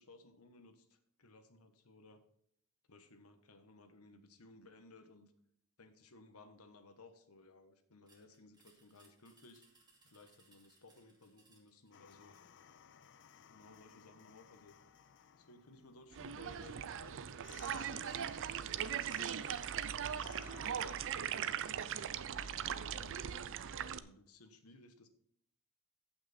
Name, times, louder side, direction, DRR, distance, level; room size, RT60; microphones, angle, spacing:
voice 1, 0.0-2.2 2.9-5.3 5.8-9.6 10.0-12.4 13.5-14.8 15.4-18.0 18.6-19.5 19.9-23.2 23.8-25.1, left 2 dB, 75° left, 8 dB, 1.3 m, -60 dB
sound 1, 8.1-12.5, right 3 dB, 20° right, 2.6 m, -69 dB
sound 2, 11.9-21.6, left 7 dB, 55° left, 0.6 m, -60 dB
sound 3, 16.1-24.0, right 9 dB, 60° right, 0.5 m, -40 dB
15.0 x 6.0 x 4.2 m, 0.67 s
head